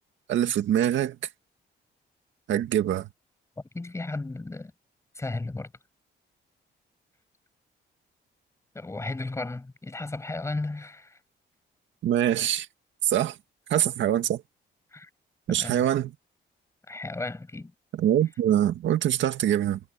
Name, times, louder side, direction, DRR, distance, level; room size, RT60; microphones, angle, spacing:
voice 1, 0.3-1.2 2.5-3.1 12.0-12.7 13.0-13.4 13.7-14.4 15.5-16.1 18.0-19.8, right 11 dB, 85° right, 2.0 m, -24 dB
voice 2, 3.7-4.7 5.1-5.7 8.7-11.2 13.1-13.2 14.9-15.1 15.5-15.8 16.9-17.7, left 2 dB, 15° left, 6.2 m, -34 dB
cardioid pair, 155°, 19 cm